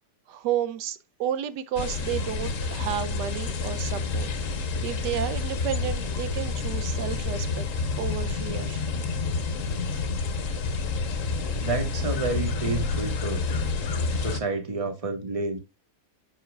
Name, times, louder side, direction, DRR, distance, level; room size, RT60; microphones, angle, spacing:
voice 1, 0.3-4.3 4.8-7.6 8.0-8.8, right 10 dB, 85° right, 1.3 m, -31 dB
sound 1, 1.8-14.4, left 4 dB, 55° left, 1.3 m, -29 dB
voice 2, 11.6-13.4 14.2-15.6, right 3 dB, 20° right, 1.2 m, -29 dB
7.6 x 6.4 x 2.3 m
omnidirectional pair, 1.8 m